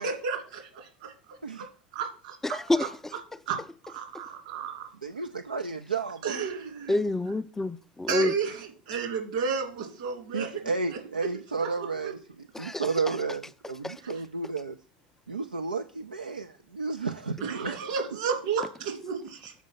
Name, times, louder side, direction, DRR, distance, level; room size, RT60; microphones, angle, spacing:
voice 1, 0.0-1.7 1.9-2.9 3.5-3.6 3.8-4.9 6.2-7.0 8.1-10.5 10.9-11.0 11.6-12.1 14.0-14.1 17.4-19.5, right 5 dB, 60° right, 2.7 m, -33 dB
voice 2, 2.4-2.9 6.9-8.3 12.5-12.9 13.8-13.9, left 2 dB, 10° left, 0.3 m, -27 dB
voice 3, 5.0-6.5 10.3-14.8 15.3-17.9, right 4 dB, 80° right, 0.4 m, -32 dB
7.3 x 5.2 x 5.7 m
figure-of-eight pair, 80°, 5 cm